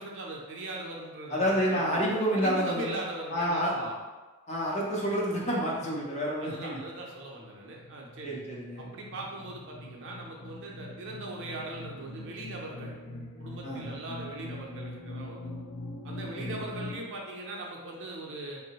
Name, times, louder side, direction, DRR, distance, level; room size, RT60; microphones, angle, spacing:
voice 1, 0.0-3.9 6.4-8.3 8.8-12.9 13.4-15.5 16.0-18.6, right 2 dB, 55° right, -1 dB, 0.5 m, -40 dB
voice 2, 1.3-3.0 3.3-3.9 4.5-6.8 8.2-8.9 13.6-13.8 16.4-16.7, equal, 30° left, -3 dB, 0.6 m, -29 dB
sound 1, 7.2-16.9, left 1 dB, 80° left, 0.4 m, -42 dB
3.5 x 2.0 x 2.8 m, 1.3 s
head